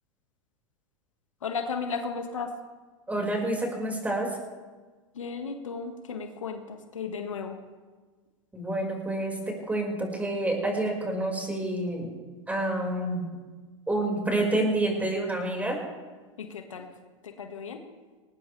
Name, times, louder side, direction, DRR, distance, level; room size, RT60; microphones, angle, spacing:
voice 1, 1.4-2.5 5.1-7.6 16.4-16.9 17.2-17.8, left 5 dB, 85° left, 4 dB, 2.0 m, -34 dB
voice 2, 3.1-4.3 8.5-9.4 9.7-12.1 12.5-13.2 13.9-15.8, right 1 dB, 10° right, 0 dB, 5.6 m, -28 dB
20.5 x 18.5 x 3.5 m, 1.4 s
hypercardioid pair, 95°, 16 cm